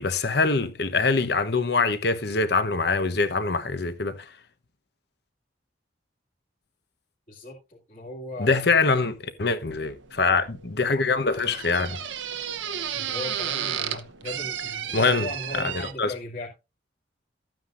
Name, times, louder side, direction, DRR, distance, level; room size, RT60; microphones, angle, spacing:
voice 1, 0.0-4.1 8.4-12.0 14.9-15.3 16.0-16.1, left 4 dB, 60° left, 1.1 m, -24 dB
voice 2, 7.3-8.7 12.9-16.5, left 2 dB, 40° left, 2.4 m, -38 dB
sound 1, 9.7-15.9, right 9 dB, 80° right, 1.0 m, -33 dB
13.0 x 9.2 x 2.6 m
head